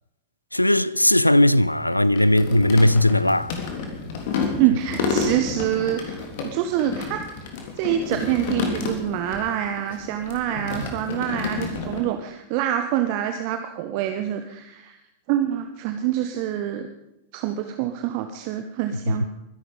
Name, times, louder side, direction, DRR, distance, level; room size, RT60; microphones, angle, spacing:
voice 1, 0.5-3.5 19.1-19.2, left 1 dB, 85° left, 0.5 m, -18 dB
sound 1, 1.7-9.4 9.7-12.0, left 4 dB, 50° left, 3.4 m, -30 dB
voice 2, 4.6-7.2 7.8-14.9 15.3-16.9 17.3-19.2, right 11 dB, 45° right, 1.3 m, -26 dB
23.0 x 11.5 x 5.4 m
figure-of-eight pair, 90°, 0 cm